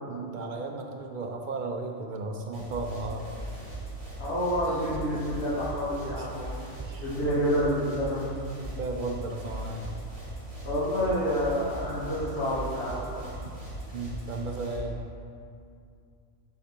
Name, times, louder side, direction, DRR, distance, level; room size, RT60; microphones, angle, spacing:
voice 1, 0.1-3.3 4.9-5.2 6.2-6.3 6.9-7.1 8.6-9.9 13.9-15.0, right 2 dB, 60° right, 2 dB, 0.5 m, -35 dB
sound 1, 2.5-14.8, right 1 dB, 30° right, 2.0 m, -39 dB
voice 2, 4.2-6.5 7.0-8.3 10.6-13.4, equal, 60° left, -10 dB, 1.6 m, -28 dB
8.2 x 4.4 x 4.3 m, 2.4 s
omnidirectional pair, 1.2 m